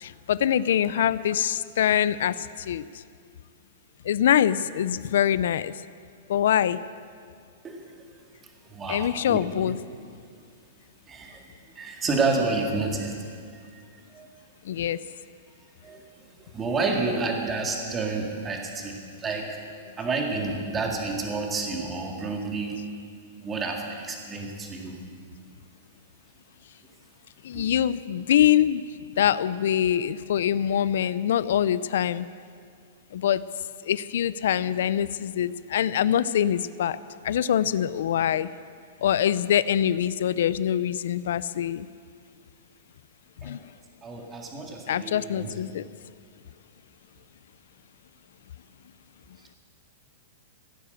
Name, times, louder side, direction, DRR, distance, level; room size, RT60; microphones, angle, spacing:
voice 1, 0.0-2.9 4.0-5.7 6.3-6.8 8.9-9.8 14.7-15.0 27.4-28.8 29.2-32.3 33.1-33.4 33.8-37.0 37.2-38.5 39.0-41.9 43.4-43.6 44.9-45.9, left 10 dB, 70° left, 17 dB, 0.4 m, -24 dB
voice 2, 7.6-8.2 8.7-9.7 11.1-11.5 11.8-13.4 14.1-14.3 15.8-16.3 16.5-19.6 20.0-22.8 23.4-25.0 27.5-27.7 43.4-43.6 44.0-45.5, right 3 dB, 15° right, 2 dB, 1.9 m, -30 dB
15.5 x 9.9 x 8.0 m, 2.2 s
hypercardioid pair, 155°, 0 cm